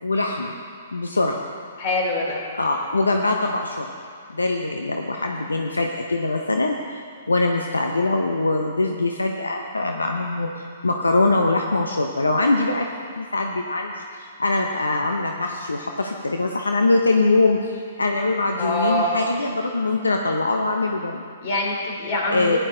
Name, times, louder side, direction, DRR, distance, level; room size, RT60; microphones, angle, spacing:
voice 1, 0.0-0.5 0.9-1.4 2.5-3.9 4.3-12.9 13.2-21.2 22.3-22.6, left 2 dB, 85° left, 3 dB, 0.8 m, -23 dB
voice 2, 1.8-2.4 18.6-19.1 21.4-22.6, left 1 dB, 50° left, 0 dB, 2.9 m, -24 dB
15.5 x 10.0 x 3.8 m, 2.3 s
figure-of-eight pair, 120°, 0 cm